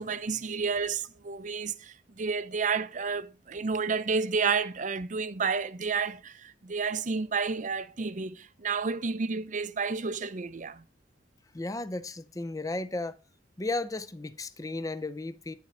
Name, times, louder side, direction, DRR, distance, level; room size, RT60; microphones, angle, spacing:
voice 1, 0.0-10.8, right 5 dB, 45° right, 0.6 m, -31 dB
voice 2, 11.5-13.2 13.6-15.5, left 2 dB, 20° left, 0.6 m, -34 dB
10.5 x 4.2 x 5.5 m
head